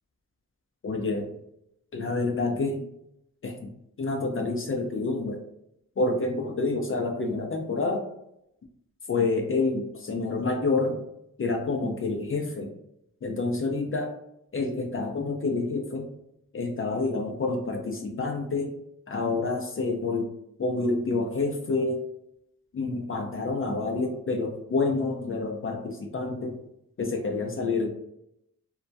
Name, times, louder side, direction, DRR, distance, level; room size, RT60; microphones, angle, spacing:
voice 1, 0.8-1.3 1.9-2.8 3.4-3.7 4.0-5.4 6.0-8.0 9.1-11.0 11.4-12.7 13.2-14.1 14.5-16.1 16.5-18.7 19.1-20.3 20.6-22.0 22.7-26.6 27.0-27.9, left 3 dB, 40° left, 2 dB, 0.5 m, -28 dB
2.2 x 2.1 x 2.6 m, 0.80 s
cardioid pair, 50°, 34 cm